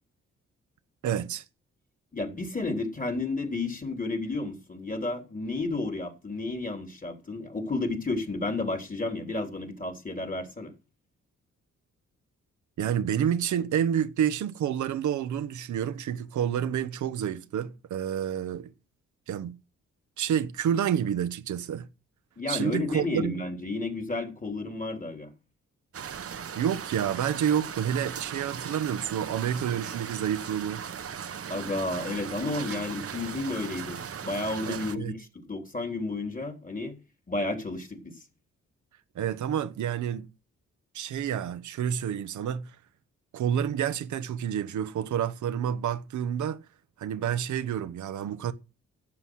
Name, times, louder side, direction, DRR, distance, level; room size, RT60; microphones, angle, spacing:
voice 1, 1.0-1.4 12.8-18.7 19.3-19.6 20.2-21.9 22.5-23.3 26.6-30.8 34.7-35.2 39.1-40.3 40.9-42.7 43.3-46.6 47.0-48.5, right 9 dB, 85° right, 1.0 m, -29 dB
voice 2, 2.1-10.7 22.4-25.3 31.5-37.0 37.3-38.1, left 2 dB, 30° left, 3.4 m, -32 dB
sound 1, 25.9-35.0, right 7 dB, 50° right, 1.0 m, -38 dB
12.0 x 7.8 x 6.3 m
cardioid pair, 60°, 29 cm